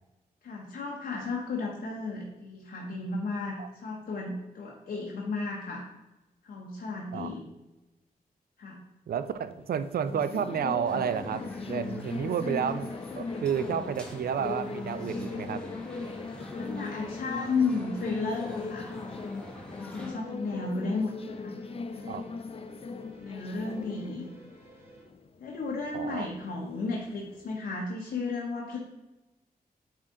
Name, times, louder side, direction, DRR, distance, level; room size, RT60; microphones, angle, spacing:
voice 1, 0.4-5.8 6.4-7.4 8.6-8.8 16.5-18.9 19.8-22.2 23.2-24.3 25.4-28.8, left 3 dB, 85° left, -1 dB, 0.9 m, -34 dB
voice 2, 9.1-11.4 11.7-15.7 22.1-22.3 25.9-26.3, right 8 dB, 75° right, 13 dB, 0.4 m, -31 dB
sound 1, 9.2-27.6, left 4 dB, 40° left, 0.4 m, -39 dB
sound 2, 10.4-25.0, right 1 dB, 15° right, 2.3 m, -54 dB
sound 3, 10.8-20.1, equal, 5° left, 1.3 m, -45 dB
8.8 x 3.8 x 3.7 m, 1.1 s
wide cardioid pair, 105°, 16 cm